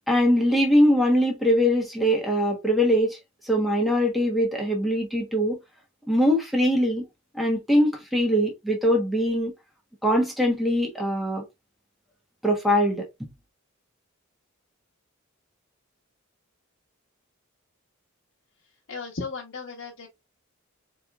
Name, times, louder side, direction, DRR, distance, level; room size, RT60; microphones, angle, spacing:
voice 1, 0.1-3.2 3.5-5.6 6.1-7.0 7.3-9.5 10.0-11.4 12.4-13.3, equal, ahead, 1.2 m, -22 dB
voice 2, 18.9-20.1, left 4 dB, 70° left, 1.1 m, -35 dB
4.2 x 3.2 x 2.4 m
head